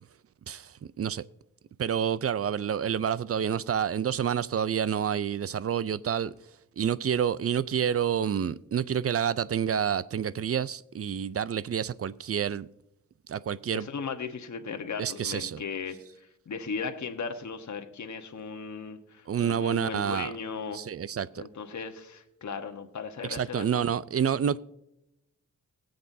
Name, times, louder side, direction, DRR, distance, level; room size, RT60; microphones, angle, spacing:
voice 1, 0.5-1.2 1.8-6.3 6.8-12.7 13.3-13.9 15.0-15.6 19.3-20.3 20.7-21.4 23.2-24.6, right 8 dB, 50° right, 0.5 m, -28 dB
voice 2, 13.7-16.0 16.5-20.8 21.4-23.8, left 5 dB, 65° left, 1.2 m, -37 dB
20.5 x 7.8 x 2.7 m
cardioid pair, 70°, 31 cm